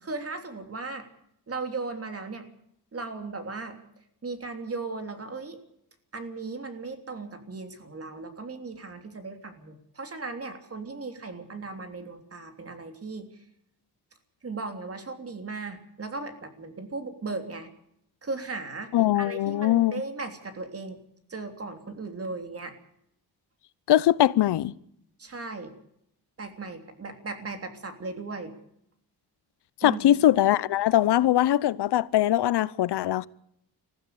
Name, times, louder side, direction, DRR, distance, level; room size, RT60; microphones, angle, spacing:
voice 1, 0.0-1.1 1.5-2.5 2.9-3.8 4.2-5.6 6.1-13.3 14.4-17.7 18.2-21.0 21.3-22.7 25.2-25.7 26.4-28.5 29.8-30.2, right 3 dB, 35° right, 3.3 m, -37 dB
voice 2, 18.9-19.9 23.9-24.7 29.8-33.3, left 13 dB, 80° left, 0.9 m, -22 dB
20.5 x 15.0 x 8.4 m
cardioid pair, 115°, 40 cm